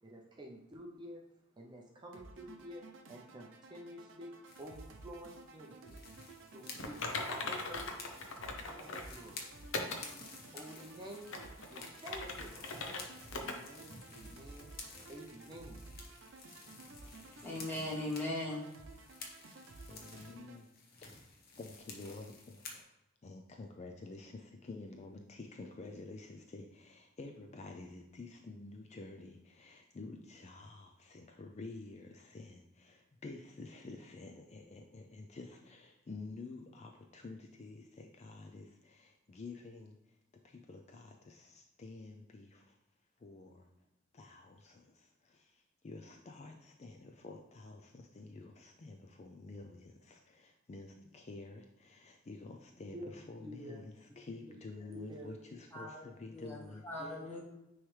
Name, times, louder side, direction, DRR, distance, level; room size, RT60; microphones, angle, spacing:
voice 1, 0.0-1.2 1.6-6.0 6.5-8.1 8.4-9.5 9.9-11.4 11.7-12.8 13.4-14.8 15.1-15.9 52.9-53.1 53.4-53.8 54.9-55.4 57.0-57.2, equal, 25° right, 0 dB, 0.6 m, -50 dB
sound 1, 2.1-20.6, right 3 dB, 70° right, 0.7 m, -54 dB
sound 2, 4.4-22.8, left 3 dB, 50° left, 1.0 m, -53 dB
Typing, 6.8-9.1 9.7-10.1 10.6-10.7 11.2-13.0 13.3-13.6 13.9-14.0 14.6-14.7, left 3 dB, 75° left, 0.8 m, -40 dB
voice 2, 17.4-18.7 55.7-56.0 56.3-56.6 56.8-57.4, left 1 dB, 10° left, -4 dB, 1.4 m, -39 dB
voice 3, 19.9-20.7 21.0-21.3 21.6-22.9 23.2-42.8 43.2-43.7 44.1-57.4, left 3 dB, 35° left, 3 dB, 0.4 m, -50 dB
9.4 x 3.2 x 3.2 m, 0.92 s
head